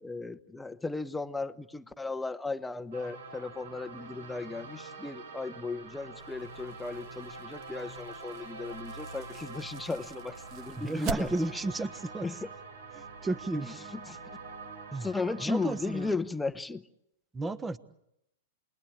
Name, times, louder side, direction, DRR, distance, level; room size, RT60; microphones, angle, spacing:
voice 1, 0.0-11.6 12.2-12.5 13.6-14.2 15.0-16.9, left 3 dB, 10° left, 1.0 m, -36 dB
sound 1, 2.9-16.2, right 3 dB, 80° right, 6.1 m, -45 dB
sound 2, 6.2-11.8, right 6 dB, 45° right, 1.9 m, -44 dB
voice 2, 10.8-12.3 12.9-13.8 14.9-15.1 15.4-16.1 17.3-17.8, right 2 dB, 15° right, 1.3 m, -33 dB
28.0 x 21.5 x 8.8 m
hypercardioid pair, 120°, 0 cm